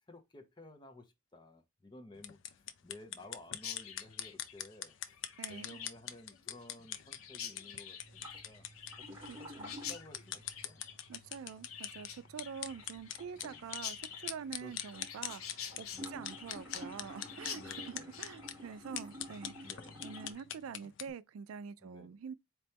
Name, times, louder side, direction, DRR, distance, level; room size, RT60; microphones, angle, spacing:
voice 1, 0.1-4.9 5.5-8.6 9.0-10.9 13.4-13.7 14.6-14.7 15.9-16.3 17.5-18.1 19.6-20.0 21.8-22.2, left 2 dB, 20° left, 0.7 m, -54 dB
sound 1, 2.1-21.1, left 10 dB, 60° left, 0.4 m, -45 dB
Chirp tweet, 3.6-20.4, left 8 dB, 85° left, 0.8 m, -48 dB
voice 2, 5.4-5.8 9.3-9.8 11.1-19.8 20.0-22.3, right 6 dB, 80° right, 0.3 m, -46 dB
sound 2, 8.0-20.3, equal, 10° right, 2.6 m, -52 dB
4.2 x 2.9 x 3.3 m
head